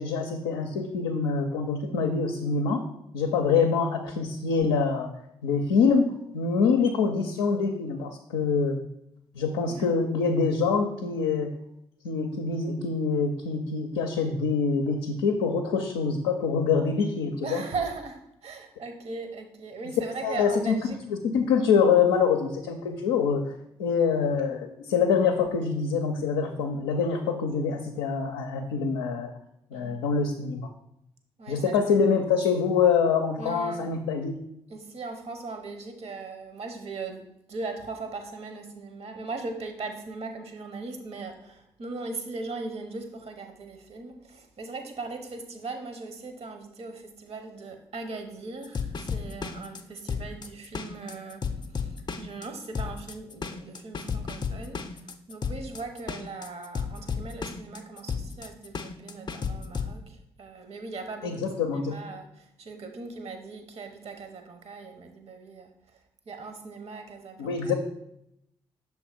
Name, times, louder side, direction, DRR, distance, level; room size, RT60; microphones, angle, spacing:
voice 1, 0.0-2.8 3.1-5.1 5.4-6.1 6.3-8.8 9.3-11.5 12.0-17.6 20.2-20.7 21.1-23.5 23.8-29.3 29.7-30.7 31.5-34.4 61.2-61.9 67.4-67.7, left 5 dB, 80° left, 3 dB, 0.5 m, -25 dB
voice 2, 17.4-21.0 29.7-30.1 31.4-31.9 33.4-33.8 34.7-51.4 51.7-67.7, right 3 dB, 55° right, 6 dB, 1.0 m, -39 dB
sound 1, 48.6-59.9, left 5 dB, 35° left, 0.5 m, -33 dB
6.3 x 3.1 x 4.9 m, 0.78 s
hypercardioid pair, 40°, 13 cm